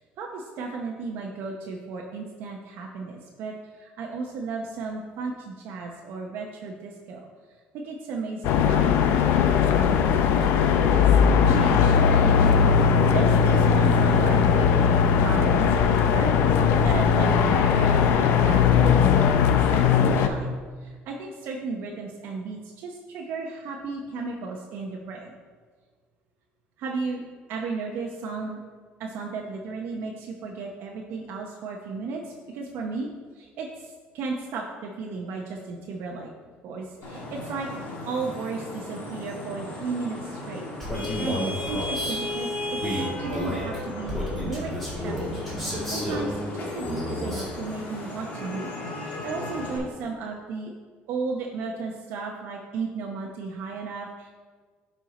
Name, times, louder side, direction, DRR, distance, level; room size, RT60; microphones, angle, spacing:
voice 1, 0.0-7.2 7.7-10.5 10.8-11.1 11.4-12.6 13.1-20.5 20.8-25.4 26.8-27.2 27.5-28.6 29.0-36.3 36.6-37.7 38.0-40.7 41.2-42.5 42.8-45.3 45.9-48.7 49.0-50.7 51.1-54.3, right 4 dB, 65° right, 0 dB, 0.8 m, -34 dB
sound 1, 8.4-20.3, left 6 dB, 70° left, 0.5 m, -19 dB
Vehicle horn car horn honking / Traffic noise roadway noise, 37.0-49.8, left 1 dB, 55° left, 2.0 m, -35 dB
Male speech man speaking, 40.8-42.2 42.8-46.3 46.8-47.5, equal, 5° left, 2.3 m, -31 dB
10.5 x 4.6 x 4.1 m, 1.5 s
cardioid pair, 155°, 4 cm